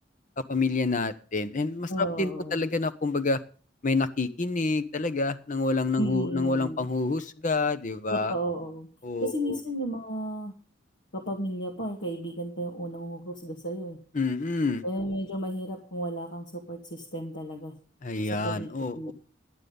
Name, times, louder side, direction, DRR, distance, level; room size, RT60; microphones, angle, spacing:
voice 1, 0.5-3.4 3.8-8.3 9.0-9.6 14.1-14.8 18.0-19.1, left 3 dB, 40° left, 12 dB, 1.0 m, -28 dB
voice 2, 1.9-2.6 6.0-6.9 8.1-8.9 9.2-10.5 11.1-14.0 14.8-17.7 18.4-19.1, right 1 dB, 65° left, 0 dB, 2.0 m, -33 dB
11.5 x 9.7 x 5.3 m, 0.39 s
head